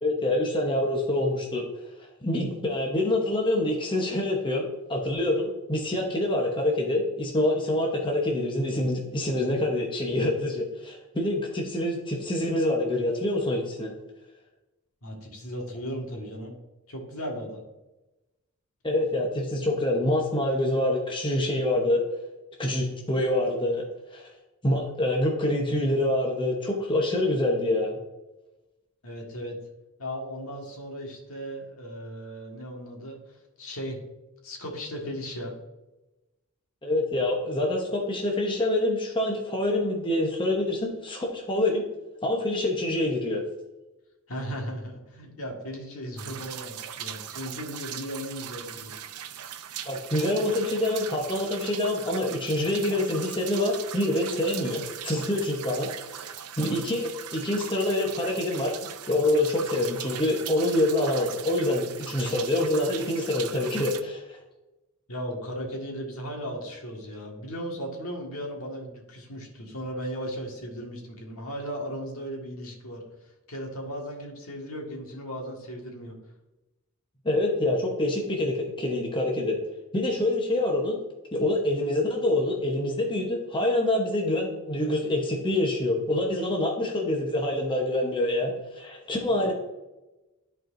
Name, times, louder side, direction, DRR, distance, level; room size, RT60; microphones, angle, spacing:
voice 1, 0.0-1.7 2.2-13.9 18.8-22.0 22.6-23.8 24.1-24.3 24.6-28.0 36.8-41.8 42.2-43.4 49.9-56.2 56.6-64.4 77.2-79.6 79.9-81.0 81.3-89.5, left 1 dB, 20° left, 0 dB, 0.9 m, -26 dB
voice 2, 15.0-16.5 16.9-17.6 29.0-29.6 30.0-34.0 34.4-35.5 44.3-48.9 65.1-76.2 89.3-89.5, equal, 70° left, 0 dB, 1.7 m, -36 dB
sound 1, 46.2-64.0, right 9 dB, 85° right, 0.6 m, -39 dB
13.0 x 4.5 x 2.6 m, 1.0 s
head